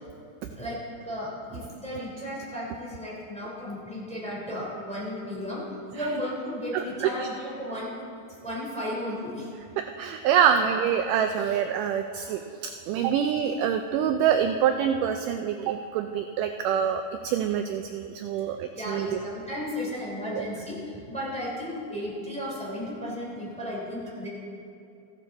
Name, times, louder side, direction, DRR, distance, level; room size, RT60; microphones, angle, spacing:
voice 1, 0.6-5.6 5.9-8.0 8.4-9.5 13.1-13.2 18.7-24.3, equal, ahead, -6 dB, 2.7 m, -34 dB
voice 2, 6.7-7.3 9.8-19.2 20.3-20.5, right 8 dB, 85° right, 7 dB, 1.9 m, -26 dB
15.0 x 11.5 x 4.2 m, 2.7 s
omnidirectional pair, 4.2 m